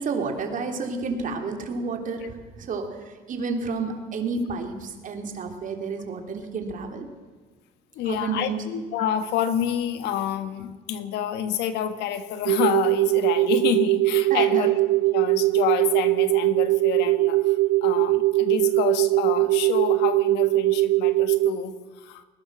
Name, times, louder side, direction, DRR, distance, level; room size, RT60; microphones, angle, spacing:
voice 1, 0.0-7.1 8.0-8.6 14.3-14.7, right 4 dB, 50° right, 4 dB, 3.3 m, -30 dB
voice 2, 7.9-14.8 15.1-22.2, left 9 dB, 90° left, 10 dB, 1.5 m, -28 dB
sound 1, 12.5-21.5, right 19 dB, 80° right, 0.6 m, -21 dB
21.0 x 19.5 x 6.2 m, 1.4 s
cardioid pair, 110°, 17 cm